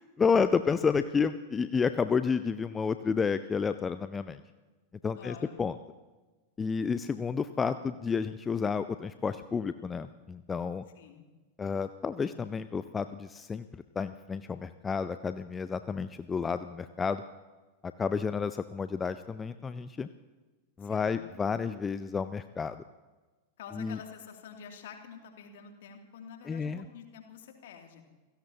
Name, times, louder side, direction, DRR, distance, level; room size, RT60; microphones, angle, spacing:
voice 1, 0.2-4.4 5.0-5.7 6.6-10.8 11.6-13.7 14.0-17.2 18.0-20.1 20.8-22.8 23.7-24.0 26.5-26.9, left 5 dB, 15° left, 12 dB, 0.5 m, -30 dB
voice 2, 5.2-5.6 10.9-11.3 20.8-21.2 23.6-28.0, left 7 dB, 55° left, 3 dB, 2.7 m, -48 dB
29.0 x 17.0 x 2.9 m, 1.3 s
figure-of-eight pair, 90°, 0 cm